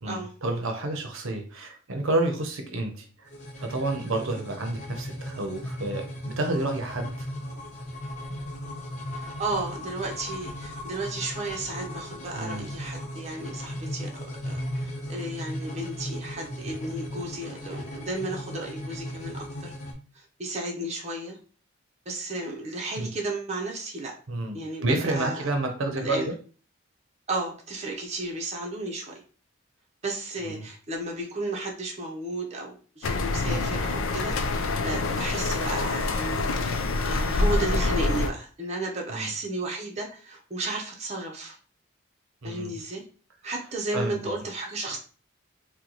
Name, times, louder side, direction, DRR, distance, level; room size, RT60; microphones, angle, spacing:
voice 1, 0.0-3.3 3.6-7.3 12.3-12.7 23.0-23.1 24.3-26.3 30.4-30.6 33.5-33.7 37.0-37.1 39.1-39.3 42.4-42.8 43.9-44.2, right 2 dB, 75° right, 4 dB, 0.7 m, -30 dB
sound 1, 3.3-19.9, equal, 35° left, 0.6 m, -37 dB
voice 2, 9.2-19.7 20.1-21.4 22.1-24.1 24.5-25.5 26.0-26.3 27.3-29.2 30.0-41.6 42.4-43.0 43.4-45.0, right 2 dB, 30° right, 0 dB, 0.6 m, -34 dB
sound 2, 33.0-38.3, left 3 dB, 80° left, 0.4 m, -26 dB
3.0 x 2.2 x 3.8 m, 0.39 s
head